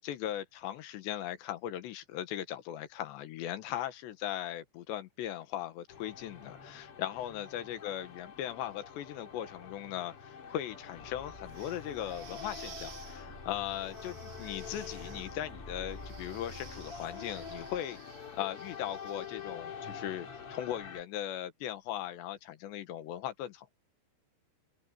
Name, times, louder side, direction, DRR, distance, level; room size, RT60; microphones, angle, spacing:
voice 1, 0.0-18.0 18.3-23.7, left 12 dB, 75° left, 3.4 m, -38 dB
sound 1, 5.9-21.0, left 6 dB, 40° left, 2.4 m, -47 dB
sound 2, 10.9-17.8, left 1 dB, 10° left, 6.5 m, -49 dB
sound 3, 11.4-19.7, right 7 dB, 70° right, 1.4 m, -54 dB
omnidirectional pair, 5.5 m